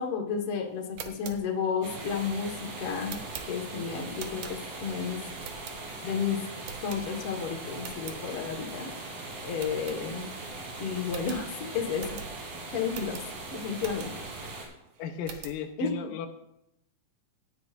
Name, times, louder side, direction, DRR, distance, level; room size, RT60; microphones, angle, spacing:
voice 1, 0.0-3.2 3.5-5.2 6.0-6.4 6.8-8.9 9.4-10.3 10.8-12.1 12.7-13.2 13.5-14.1 15.8-16.1, left 6 dB, 50° left, 1 dB, 2.1 m, -32 dB
sound 1, 0.8-4.9 5.4-6.1 6.6-7.4 7.7-8.2 8.7-8.8 9.0-9.1 9.6-10.5 10.7-10.8 11.1-14.4 14.8-15.6, right 8 dB, 70° right, 2.3 m, -44 dB
sound 2, 1.8-14.7, right 2 dB, 85° right, 4.5 m, -40 dB
voice 2, 15.0-16.3, left 8 dB, 90° left, 5 dB, 2.6 m, -36 dB
17.0 x 9.8 x 2.5 m, 0.83 s
omnidirectional pair, 3.9 m